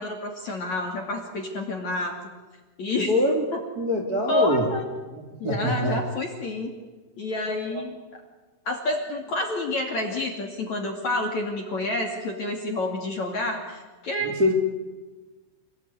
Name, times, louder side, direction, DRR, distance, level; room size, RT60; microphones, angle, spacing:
voice 1, 0.0-2.2 2.8-3.1 3.5-3.6 4.3-4.8 5.4-6.8 7.2-7.9 8.7-14.3, left 2 dB, 45° left, 2 dB, 3.0 m, -29 dB
voice 2, 3.1-3.4 3.8-4.7 5.1-6.0 7.7-7.8 14.2-14.5, left 1 dB, 25° right, 3 dB, 2.3 m, -24 dB
29.0 x 18.5 x 9.6 m, 1.3 s
omnidirectional pair, 5.9 m